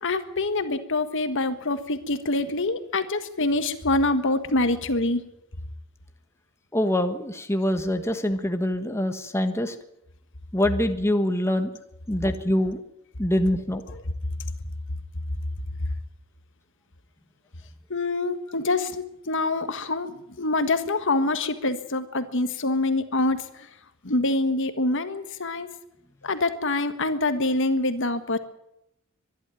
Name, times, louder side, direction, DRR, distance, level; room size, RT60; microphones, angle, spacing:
voice 1, 0.0-5.2 17.9-23.7 24.0-25.7 26.2-28.4, left 2 dB, 60° left, 10 dB, 1.6 m, -25 dB
voice 2, 6.7-9.7 10.5-11.7 12.1-12.8 13.2-13.8, left 1 dB, 10° left, 7 dB, 1.3 m, -24 dB
23.5 x 12.0 x 9.2 m, 0.81 s
head